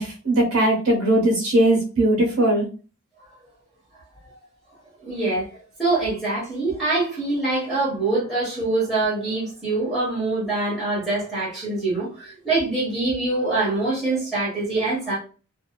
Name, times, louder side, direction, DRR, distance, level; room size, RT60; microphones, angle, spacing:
voice 1, 0.0-2.6, right 1 dB, 70° right, 1.0 m, -19 dB
voice 2, 5.0-15.2, right 2 dB, ahead, 1.1 m, -24 dB
2.6 x 2.3 x 2.2 m
head